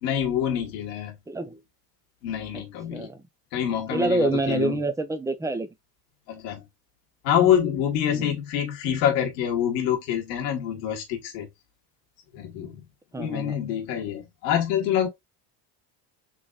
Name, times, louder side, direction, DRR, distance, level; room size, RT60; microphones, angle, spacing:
voice 1, 0.0-1.2 2.2-3.1 3.5-4.8 6.3-6.6 7.2-11.5 12.3-12.8 13.1-15.1, left 9 dB, 90° left, 1.4 m, -26 dB
voice 2, 1.3-1.6 2.9-3.2 3.9-5.7 8.1-8.3 13.1-13.6, right 2 dB, 5° right, 0.4 m, -27 dB
3.9 x 3.5 x 2.3 m
supercardioid pair, 95°, 50 cm